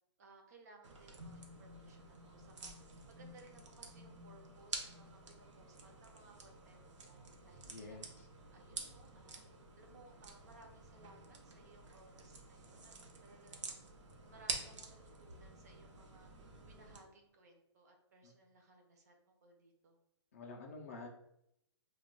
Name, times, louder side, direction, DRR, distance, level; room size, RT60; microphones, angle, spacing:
voice 1, 0.2-8.1 8.5-9.5 9.8-12.9 13.2-13.8 14.2-16.3 16.6-20.0, right 2 dB, 35° right, 3 dB, 0.5 m, -62 dB
sound 1, 0.8-17.0, right 3 dB, 90° right, 0.6 m, -49 dB
voice 2, 7.7-8.1 20.3-21.1, left 3 dB, 30° left, 1 dB, 0.4 m, -48 dB
2.2 x 2.1 x 3.7 m, 0.78 s
hypercardioid pair, 170°, 15 cm